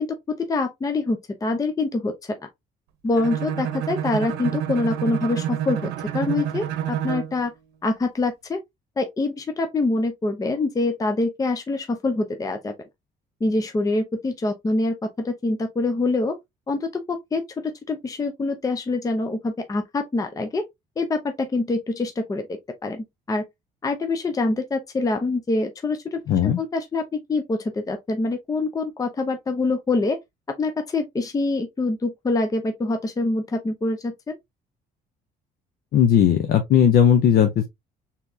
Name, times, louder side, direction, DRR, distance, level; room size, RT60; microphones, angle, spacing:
voice 1, 0.0-2.4 3.0-7.5 7.8-8.6 9.0-12.7 13.4-16.4 16.7-20.6 21.0-23.4 23.8-27.0 27.3-30.2 30.6-34.4, left 2 dB, 20° left, 0.6 m, -25 dB
Bowed string instrument, 3.1-7.4, right 10 dB, 90° right, 0.7 m, -28 dB
voice 2, 26.3-26.6 35.9-37.7, left 9 dB, 65° left, 0.7 m, -17 dB
4.5 x 3.6 x 2.7 m
cardioid pair, 110°, 17 cm